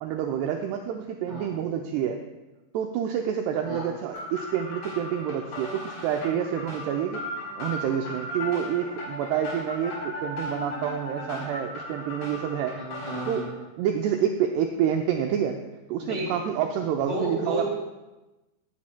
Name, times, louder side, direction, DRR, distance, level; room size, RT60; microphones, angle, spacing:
voice 1, 0.0-2.2 2.7-7.2 7.6-12.7 13.3-13.5 13.8-15.6 15.9-17.6, right 9 dB, 85° right, 3 dB, 2.4 m, -28 dB
sound 1, 4.1-13.4, left 1 dB, 70° left, 6.0 m, -36 dB
voice 2, 12.8-13.6 16.0-16.3 17.1-17.6, right 1 dB, 25° left, -6 dB, 1.7 m, -32 dB
18.0 x 9.3 x 2.2 m, 1.1 s
omnidirectional pair, 5.3 m